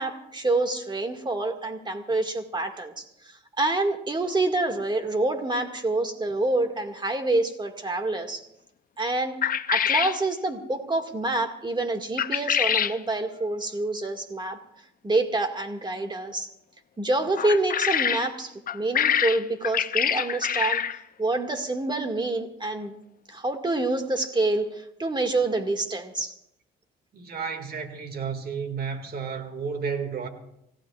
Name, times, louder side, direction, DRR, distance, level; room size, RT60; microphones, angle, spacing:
voice 1, 0.0-8.5 9.0-14.6 15.0-16.5 17.0-23.0 23.3-26.3, right 2 dB, 20° right, 2.1 m, -27 dB
sound 1, 9.4-10.2 12.2-13.0 17.4-18.3 18.7-21.0, left 8 dB, 45° left, 0.6 m, -25 dB
voice 2, 27.1-30.3, right 6 dB, 50° right, 2.2 m, -32 dB
28.0 x 15.5 x 2.5 m
cardioid pair, 90°, 20 cm